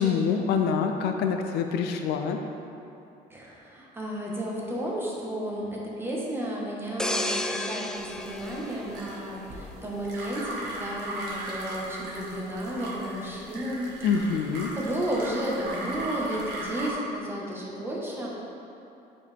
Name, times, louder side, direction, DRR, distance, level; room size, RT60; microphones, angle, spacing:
voice 1, 0.0-2.4 14.0-14.7, left 6 dB, 80° left, 5 dB, 0.5 m, -25 dB
voice 2, 3.3-14.5 14.7-18.3, right 1 dB, 15° right, -4 dB, 1.4 m, -33 dB
sound 1, 7.0-9.7 10.1-10.4, left 1 dB, 5° left, 0.4 m, -32 dB
sound 2, 7.9-16.9, right 1 dB, 80° right, 1.5 m, -38 dB
8.3 x 5.1 x 3.5 m, 2.8 s
cardioid pair, 110°, 17 cm